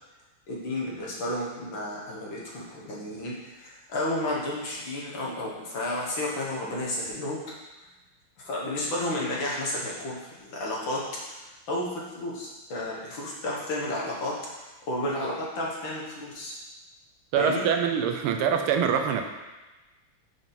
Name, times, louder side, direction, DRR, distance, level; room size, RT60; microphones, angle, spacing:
voice 1, 0.5-7.5 8.4-11.4 11.7-16.5 17.4-17.7, left 1 dB, 65° left, -4 dB, 2.0 m, -32 dB
voice 2, 17.3-19.2, right 7 dB, 80° right, 5 dB, 1.6 m, -24 dB
6.0 x 5.9 x 4.0 m, 1.1 s
omnidirectional pair, 2.4 m